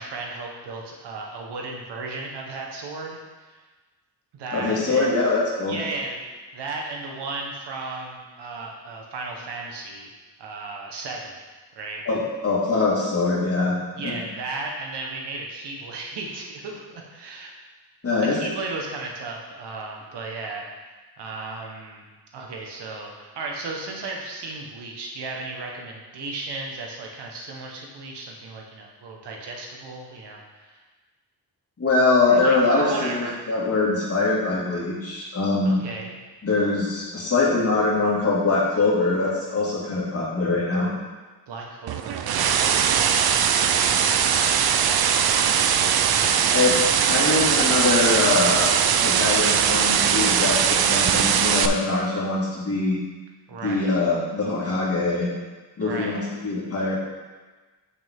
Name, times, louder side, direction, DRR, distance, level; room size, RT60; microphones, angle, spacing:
voice 1, 0.0-3.2 3.5-3.6 4.3-5.1 5.6-6.2 6.5-10.1 10.4-11.3 11.8-12.0 14.0-17.5 18.3-20.6 21.2-22.0 22.3-30.8 32.3-33.4 35.6-36.1 41.5-43.6 43.9-45.1 46.7-47.0 53.5-53.9 55.8-56.2, right 3 dB, 90° right, 0 dB, 1.4 m, -35 dB
voice 2, 4.5-5.8 12.1-13.8 14.0-14.2 18.0-18.4 31.8-35.8 36.4-40.9 46.5-48.7 49.0-53.0 53.6-55.3 55.8-56.9, left 3 dB, 35° left, -5 dB, 2.3 m, -23 dB
sound 1, 41.9-51.7, right 8 dB, 70° right, 0.6 m, -20 dB
8.1 x 6.3 x 3.7 m, 1.3 s
wide cardioid pair, 130°, 40 cm